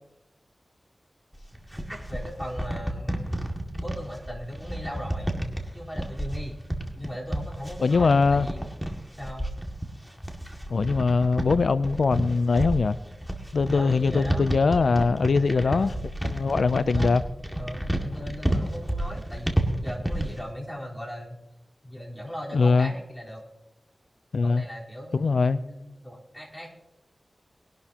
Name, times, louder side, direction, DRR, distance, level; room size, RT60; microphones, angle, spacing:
sound 1, 1.3-20.4, right 1 dB, 5° right, 2.1 m, -31 dB
voice 1, 1.7-3.3 3.8-5.4 5.7-6.6 7.0-8.7 9.2-9.5 13.6-14.6 15.3-16.0 16.7-17.1 17.6-21.4 21.8-23.4 24.4-26.7, equal, 10° left, -3 dB, 4.0 m, -38 dB
voice 2, 7.8-8.5 10.7-13.0 13.5-15.9 16.2-17.2 22.5-22.9 24.3-24.7 25.1-25.6, left 4 dB, 85° left, 14 dB, 0.4 m, -22 dB
21.5 x 11.5 x 2.9 m, 0.93 s
wide cardioid pair, 60°, 0 cm